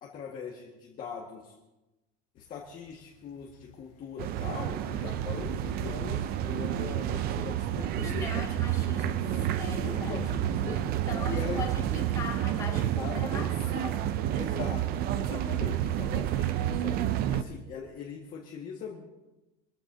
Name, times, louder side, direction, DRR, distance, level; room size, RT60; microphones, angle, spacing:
voice 1, 0.0-1.5 2.3-8.7 9.7-10.8 11.2-11.7 12.7-13.5 14.3-19.1, left 6 dB, 30° left, -2 dB, 1.7 m, -41 dB
sound 1, 2.4-11.1, left 8 dB, 60° left, 1.3 m, -46 dB
sound 2, 4.2-17.4, right 12 dB, 30° right, 0.5 m, -30 dB
voice 2, 8.0-9.3 9.6-10.2 10.6-14.2, left 4 dB, 10° left, -7 dB, 3.3 m, -40 dB
24.5 x 14.5 x 2.7 m, 1.1 s
supercardioid pair, 160°, 30 cm